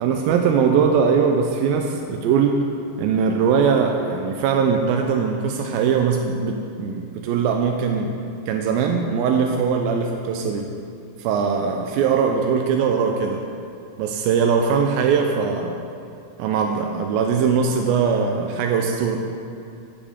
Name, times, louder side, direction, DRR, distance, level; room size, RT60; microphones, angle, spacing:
voice 1, 0.0-2.6 3.0-8.1 8.5-10.7 11.2-13.4 14.0-15.8 16.4-19.2, right 6 dB, 90° right, 2 dB, 2.4 m, -21 dB
17.0 x 7.2 x 3.6 m, 2.6 s
omnidirectional pair, 4.1 m